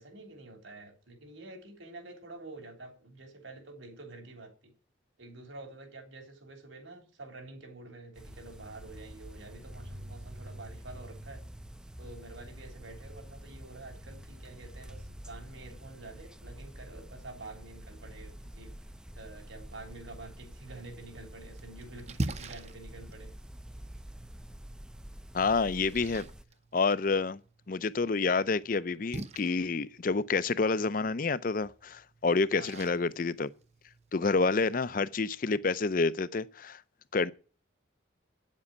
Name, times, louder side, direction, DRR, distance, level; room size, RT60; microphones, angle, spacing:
voice 1, 0.0-4.7 5.2-11.4 12.0-18.7 19.2-23.3 32.5-32.9, right 2 dB, 80° right, 3.5 m, -48 dB
sound 1, 8.2-26.4, equal, 5° right, 0.4 m, -47 dB
Splash splatter, 21.1-34.1, right 2 dB, 35° right, 0.7 m, -45 dB
voice 2, 25.3-26.2 26.7-27.4 27.7-33.5 34.1-36.8 37.1-37.3, left 4 dB, 45° left, 0.5 m, -28 dB
9.6 x 7.5 x 7.1 m
head